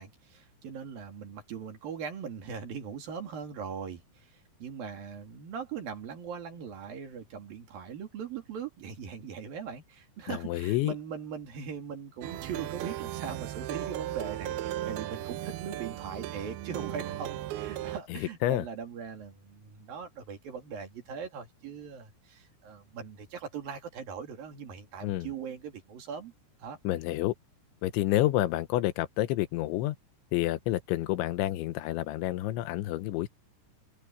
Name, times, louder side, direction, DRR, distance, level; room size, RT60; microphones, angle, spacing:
voice 1, 0.0-26.3 26.6-26.8, right 7 dB, 55° right, 4.0 m, -40 dB
voice 2, 10.3-10.9 18.1-18.7 25.0-25.3 26.8-27.3 27.8-30.0 30.3-33.3, left 15 dB, 85° left, 3.3 m, -29 dB
Plucked string instrument, 12.2-18.0, right 13 dB, 75° right, 2.5 m, -36 dB
omnidirectional pair, 5.3 m